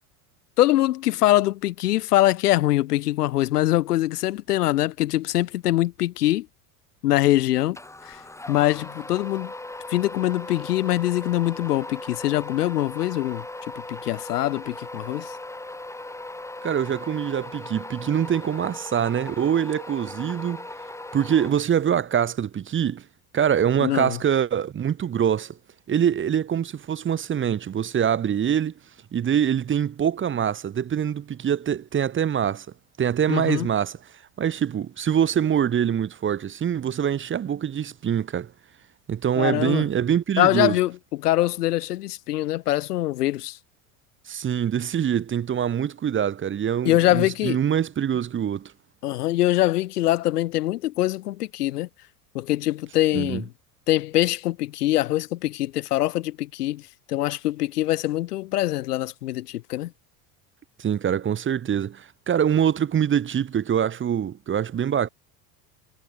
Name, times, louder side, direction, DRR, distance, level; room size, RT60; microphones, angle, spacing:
voice 1, 0.6-6.5 7.0-7.8 8.0-8.2 8.5-9.5 9.9-13.5 13.9-15.4 23.8-24.2 33.3-33.7 39.4-39.8 40.4-43.6 46.8-47.6 49.0-51.9 52.3-53.5 53.9-59.9, left 15 dB, 90° left, 2.0 m, -23 dB
sound 1, 7.7-22.0, left 2 dB, 5° left, 2.2 m, -38 dB
voice 2, 16.6-20.6 21.1-23.0 23.3-25.5 25.9-28.7 29.1-32.7 33.0-34.0 34.4-38.5 39.1-40.8 44.3-48.7 53.1-53.4 60.8-65.1, right 9 dB, 25° right, 1.1 m, -24 dB
supercardioid pair, 100°, 45 cm